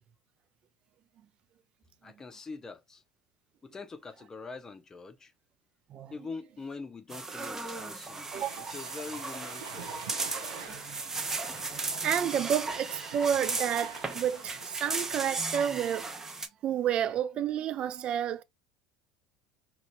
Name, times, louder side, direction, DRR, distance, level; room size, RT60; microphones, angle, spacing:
voice 1, 2.0-3.0 3.6-5.3 6.1-8.4 8.7-10.1, left 4 dB, 25° left, 0.6 m, -43 dB
sound 1, 7.1-16.5, right 3 dB, 20° right, 0.7 m, -36 dB
voice 2, 8.3-8.7 10.7-11.1 11.6-16.3 16.6-18.4, right 9 dB, 45° right, 0.3 m, -31 dB
sound 2, 8.3-15.3, right 6 dB, 75° right, 0.7 m, -46 dB
3.0 x 2.6 x 2.9 m
figure-of-eight pair, 70°, 2 cm